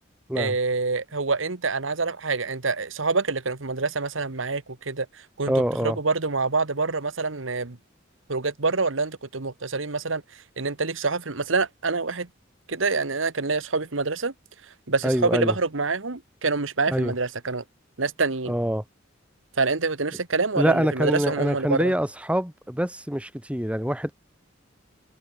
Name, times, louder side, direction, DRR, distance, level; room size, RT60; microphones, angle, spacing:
voice 1, 0.4-5.1 5.4-5.5 5.8-7.8 8.3-10.2 10.6-12.3 12.7-14.3 14.9-17.6 18.0-18.5 19.6-21.9, right 4 dB, 75° right, 1.5 m, -26 dB
voice 2, 5.5-6.0 15.0-15.6 16.9-17.1 18.5-18.8 20.6-24.1, equal, 5° right, 2.4 m, -25 dB
head